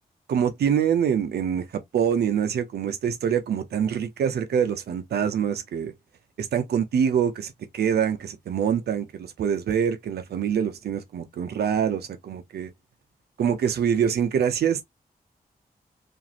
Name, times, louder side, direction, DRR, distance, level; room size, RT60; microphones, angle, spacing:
voice 1, 0.3-5.9 6.4-12.7 13.4-14.8, right 8 dB, 90° right, 0.5 m, -25 dB
2.5 x 2.4 x 2.8 m
cardioid pair, 50°, 16 cm